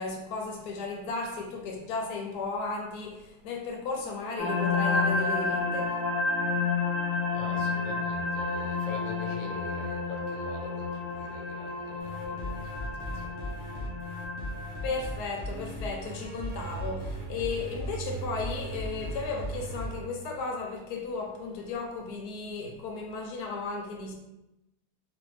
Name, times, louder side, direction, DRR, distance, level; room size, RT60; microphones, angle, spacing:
voice 1, 0.0-5.9 14.8-24.1, left 4 dB, 80° left, 1 dB, 1.1 m, -35 dB
sound 1, 4.4-15.1, left 4 dB, 5° right, 0.7 m, -30 dB
voice 2, 7.3-13.4 13.8-13.9, left 3 dB, 65° left, 0 dB, 0.8 m, -43 dB
sound 2, 12.0-19.9, left 1 dB, 30° right, 0.4 m, -38 dB
sound 3, 15.5-20.7, right 8 dB, 80° right, 1.3 m, -41 dB
3.2 x 2.3 x 3.0 m, 0.92 s
omnidirectional pair, 1.7 m